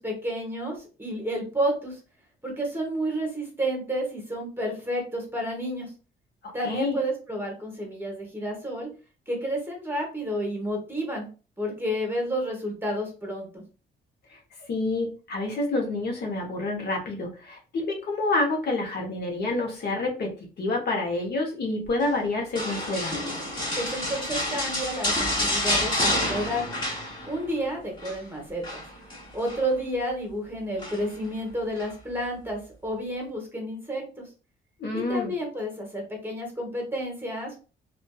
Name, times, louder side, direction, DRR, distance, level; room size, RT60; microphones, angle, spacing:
voice 1, 0.0-2.0 2.4-5.9 6.5-8.9 9.3-11.3 11.6-13.6 23.8-26.6 27.2-28.8 29.3-34.3 34.9-37.6, equal, 10° right, 0 dB, 1.0 m, -30 dB
voice 2, 6.6-7.0 14.3-14.4 14.7-23.2 34.8-35.3, left 2 dB, 55° left, 1 dB, 0.8 m, -28 dB
sound 1, 22.6-27.6 27.8-28.2 28.6-29.7 30.8-31.3 31.8-31.9, left 1 dB, 25° left, 1.3 m, -29 dB
2.5 x 2.3 x 2.3 m, 0.35 s
cardioid pair, 90°, 20 cm